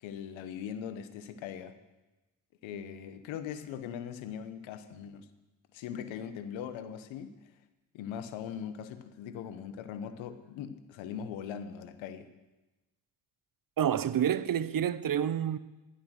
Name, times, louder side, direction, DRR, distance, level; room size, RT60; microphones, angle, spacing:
voice 1, 0.0-1.7 2.6-5.3 5.7-7.4 7.9-12.3, left 8 dB, 85° left, 1.0 m, -40 dB
voice 2, 13.8-15.6, right 9 dB, 50° right, 0.8 m, -28 dB
11.5 x 11.0 x 6.3 m
supercardioid pair, 50°, 45 cm